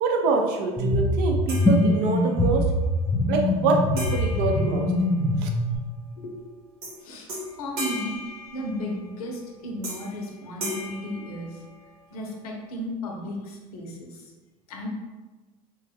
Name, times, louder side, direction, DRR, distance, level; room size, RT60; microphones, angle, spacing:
voice 1, 0.0-2.7 3.3-4.9 5.4-5.5, right 4 dB, 65° right, 3 dB, 0.6 m, -25 dB
sound 1, 0.8-5.8, left 1 dB, 15° left, 0.5 m, -23 dB
sound 2, 1.5-2.5 4.0-5.5 6.8-7.0 7.3-9.1 9.8-10.2 10.6-12.0, equal, 80° right, 1.2 m, -37 dB
voice 2, 7.6-8.2 8.5-11.6 12.1-14.3 14.7-14.9, left 1 dB, 90° left, 0 dB, 0.7 m, -34 dB
3.0 x 2.2 x 3.4 m, 1.3 s
hypercardioid pair, 85°, 19 cm